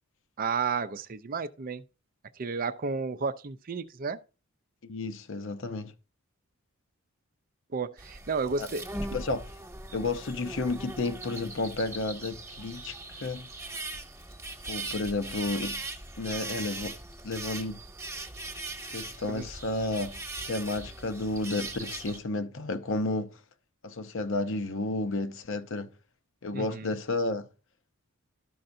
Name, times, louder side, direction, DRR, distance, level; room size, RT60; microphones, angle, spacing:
voice 1, 0.4-1.8 2.4-4.2 7.7-8.9 19.3-19.5 26.5-26.9, right 5 dB, 40° right, 0.5 m, -32 dB
voice 2, 4.8-5.9 8.6-8.7 9.1-9.5 9.9-13.0 13.2-13.5 14.7-15.8 16.2-17.0 17.2-17.8 18.9-20.2 20.5-23.3 23.8-25.9 26.4-27.5, left 2 dB, 60° left, 0.7 m, -32 dB
sound 1, 8.0-22.2, right 2 dB, 10° right, 1.3 m, -40 dB
12.5 x 5.5 x 2.6 m
head